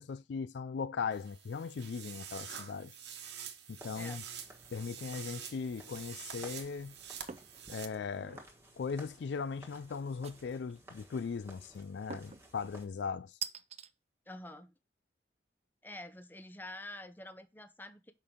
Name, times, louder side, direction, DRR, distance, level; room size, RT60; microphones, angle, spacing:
voice 1, 0.0-2.9 3.7-4.2 4.7-6.9 7.7-8.4 8.8-13.4, left 5 dB, 70° left, 0.4 m, -38 dB
sound 1, 1.1-7.9, right 8 dB, 70° right, 1.1 m, -47 dB
sound 2, 3.8-12.9, right 1 dB, 15° right, 1.5 m, -57 dB
sound 3, 7.3-7.6 8.0-8.5 10.2-10.8 12.1-12.5 13.4-13.9, right 7 dB, 35° right, 0.5 m, -43 dB
voice 2, 14.3-14.7 15.8-18.1, left 1 dB, 10° left, 0.7 m, -47 dB
6.5 x 5.2 x 3.7 m
head